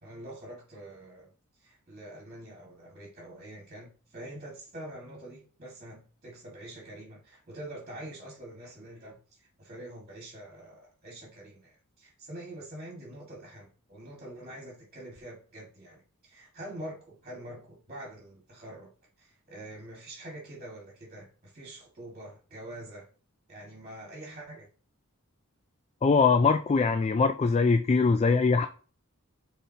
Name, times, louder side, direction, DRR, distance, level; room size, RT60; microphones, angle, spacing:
voice 1, 0.0-1.3 1.6-18.9 19.2-23.1 23.5-24.7, right 1 dB, 35° right, 1.9 m, -45 dB
voice 2, 26.0-28.7, left 4 dB, 30° left, 0.3 m, -22 dB
9.2 x 4.2 x 2.8 m
head